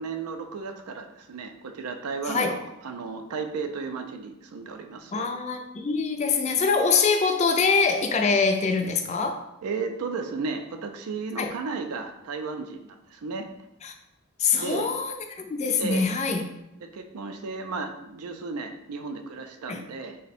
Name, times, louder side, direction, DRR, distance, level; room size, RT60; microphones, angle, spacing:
voice 1, 0.0-5.3 9.6-13.5 14.5-14.9 15.8-16.1 16.8-20.2, right 4 dB, 90° right, 6 dB, 0.4 m, -34 dB
voice 2, 5.1-9.4 11.4-11.5 13.8-13.9 14.4-16.4 19.7-19.8, left 5 dB, 30° left, 5 dB, 0.3 m, -24 dB
3.5 x 2.1 x 4.1 m, 0.86 s
head